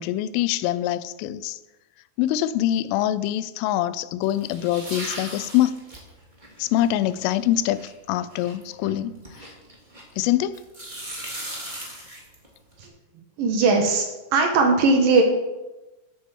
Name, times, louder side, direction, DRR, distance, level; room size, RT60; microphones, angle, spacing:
voice 1, 0.0-1.6 2.2-5.8 6.6-9.2 10.2-10.6, left 13 dB, 85° left, 15 dB, 3.1 m, -24 dB
sound 1, 4.2-10.2 10.5-12.9, right 1 dB, 20° right, 1.2 m, -38 dB
voice 2, 13.4-14.1 14.3-15.2, right 3 dB, 70° right, 3 dB, 2.1 m, -19 dB
10.5 x 8.6 x 7.0 m, 1.1 s
omnidirectional pair, 5.8 m